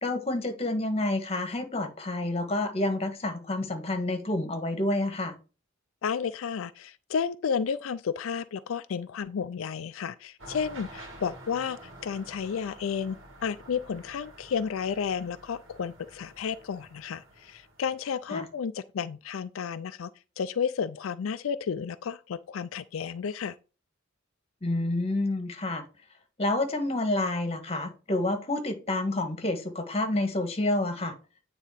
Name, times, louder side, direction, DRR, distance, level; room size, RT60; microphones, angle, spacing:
voice 1, 0.0-5.3 18.3-18.4 24.6-25.8 26.4-31.1, left 2 dB, 30° left, 1.4 m, -29 dB
voice 2, 6.0-20.1 20.4-23.5, left 6 dB, 85° left, 0.4 m, -32 dB
sound 1, 10.4-18.3, right 1 dB, 70° right, 2.4 m, -49 dB
9.2 x 3.8 x 5.7 m
head